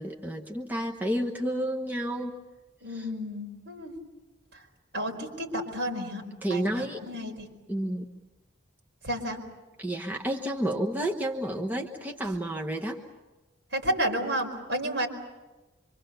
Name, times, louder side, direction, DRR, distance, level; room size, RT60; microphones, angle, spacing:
voice 1, 0.0-2.4 2.9-3.1 6.4-7.0 7.7-8.1 9.8-13.0, right 1 dB, 10° right, 0 dB, 1.2 m, -30 dB
voice 2, 2.8-3.9 4.5-4.6 4.9-6.2 6.5-7.5 9.0-9.4 13.7-15.1, equal, 65° right, 1 dB, 4.8 m, -31 dB
26.0 x 25.5 x 6.8 m, 1.1 s
head